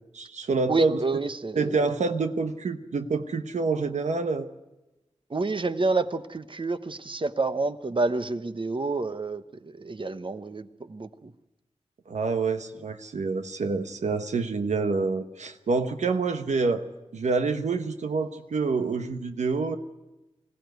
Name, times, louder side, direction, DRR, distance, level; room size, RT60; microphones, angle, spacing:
voice 1, 0.1-1.0 1.6-4.5 12.1-16.8 17.1-19.8, right 4 dB, 90° right, 7 dB, 1.0 m, -27 dB
voice 2, 0.7-1.8 5.3-11.3, right 3 dB, 45° right, 11 dB, 1.1 m, -29 dB
21.0 x 15.5 x 9.4 m, 1.0 s
cardioid pair, 50°, 12 cm